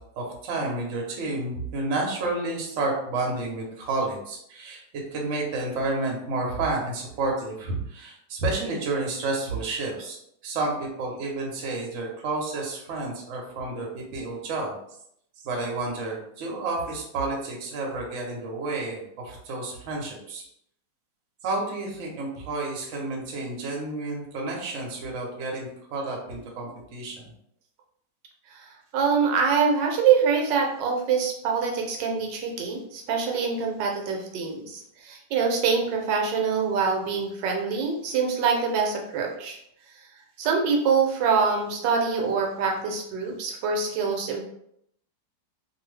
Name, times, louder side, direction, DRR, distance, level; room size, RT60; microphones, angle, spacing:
voice 1, 0.2-4.8 5.1-10.2 10.4-14.8 15.4-20.4 21.4-27.2, right 2 dB, 55° right, -1 dB, 0.9 m, -30 dB
voice 2, 28.9-39.6 40.4-44.4, right 5 dB, 80° right, 1 dB, 1.2 m, -25 dB
2.6 x 2.6 x 3.1 m, 0.72 s
omnidirectional pair, 2.0 m